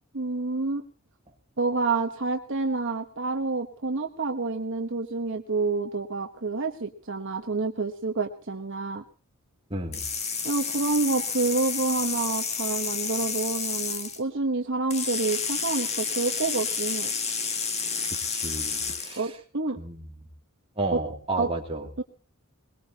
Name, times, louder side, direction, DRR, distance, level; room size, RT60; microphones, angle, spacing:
voice 1, 0.1-0.9 1.6-9.0 10.4-17.1 19.2-19.8 20.9-21.0 21.4-21.5 22.0-22.1, right 3 dB, 55° right, 4 dB, 1.2 m, -28 dB
voice 2, 9.7-10.1 18.3-19.3 19.8-20.3 20.8-21.9, right 2 dB, 25° right, 1 dB, 2.7 m, -32 dB
sound 1, 9.9-14.2 14.9-19.2, left 5 dB, 30° left, 1.8 m, -30 dB
22.0 x 20.5 x 2.9 m, 0.35 s
head